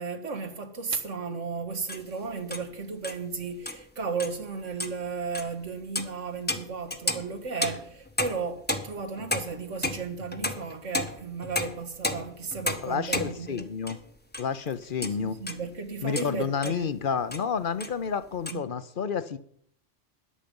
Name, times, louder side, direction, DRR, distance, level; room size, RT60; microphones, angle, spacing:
voice 1, 0.0-13.6 15.0-16.9 18.5-18.6, right 5 dB, 80° right, 1.9 m, -34 dB
sound 1, 1.9-2.1 2.5-2.7 3.0-3.2 3.7-3.8 4.2-4.4 4.7-4.9 5.3-5.5 5.9-6.1 6.5-14.1 14.3-14.5 14.8-15.6 16.2-16.3 16.6-16.8 17.3-17.5 17.8-18.5, left 2 dB, 10° left, 0.8 m, -33 dB
voice 2, 12.8-14.0 14.4-15.4 16.0-19.4, left 6 dB, 50° left, 0.8 m, -30 dB
13.5 x 10.0 x 5.3 m
omnidirectional pair, 1.2 m